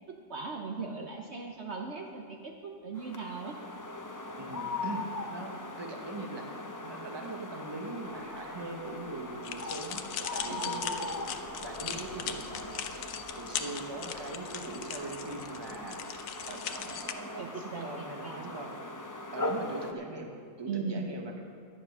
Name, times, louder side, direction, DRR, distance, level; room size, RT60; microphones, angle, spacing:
voice 1, 0.3-3.6 10.5-10.8 17.4-18.5 20.7-21.1, right 4 dB, 55° right, 2 dB, 1.0 m, -38 dB
sound 1, 2.9-19.9, left 2 dB, 25° left, 0.4 m, -40 dB
voice 2, 4.4-5.0 5.3-6.5 6.8-11.3 11.6-13.1 13.4-18.7 19.3-20.3 20.6-21.4, right 3 dB, 20° right, 2 dB, 1.0 m, -41 dB
Vehicle, 8.1-16.9, left 3 dB, 55° left, 1.3 m, -56 dB
sound 2, 9.4-17.1, left 8 dB, 70° left, 1.1 m, -39 dB
11.0 x 9.7 x 6.1 m, 2.3 s
omnidirectional pair, 1.5 m